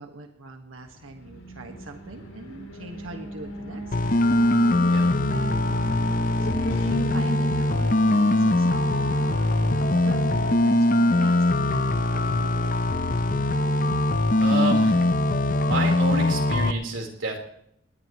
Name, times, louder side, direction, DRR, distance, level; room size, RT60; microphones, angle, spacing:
voice 1, 0.0-4.2 6.4-12.7, right 2 dB, 90° right, 3 dB, 1.7 m, -42 dB
Alarm, 1.2-14.6, equal, 75° left, 2.7 m, -36 dB
sound 1, 3.9-16.7, left 1 dB, 40° left, 0.7 m, -22 dB
voice 2, 14.4-15.1 15.6-17.4, right 2 dB, 70° right, 1 dB, 4.2 m, -29 dB
20.0 x 19.5 x 3.2 m, 0.73 s
head